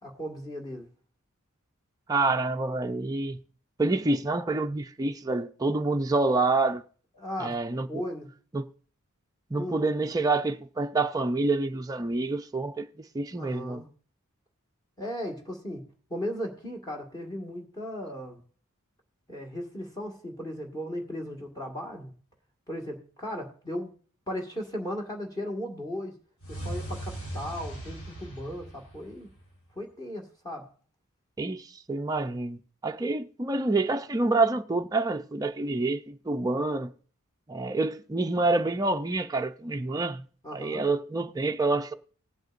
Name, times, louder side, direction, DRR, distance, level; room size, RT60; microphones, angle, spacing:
voice 1, 0.0-0.9 7.2-7.6 7.9-8.3 9.6-9.8 13.4-13.9 15.0-18.4 19.3-22.1 22.7-23.9 24.3-26.2 26.5-29.3 29.8-30.7 40.4-40.9, equal, 20° left, 1.8 m, -36 dB
voice 2, 2.1-3.4 3.8-6.8 7.4-8.0 8.5-8.7 9.5-12.9 13.1-13.8 31.4-36.9 37.5-40.2 40.5-41.9, right 3 dB, 15° right, 0.4 m, -27 dB
sound 1, 26.4-29.6, right 1 dB, 75° left, 4.0 m, -38 dB
19.5 x 8.0 x 2.5 m
head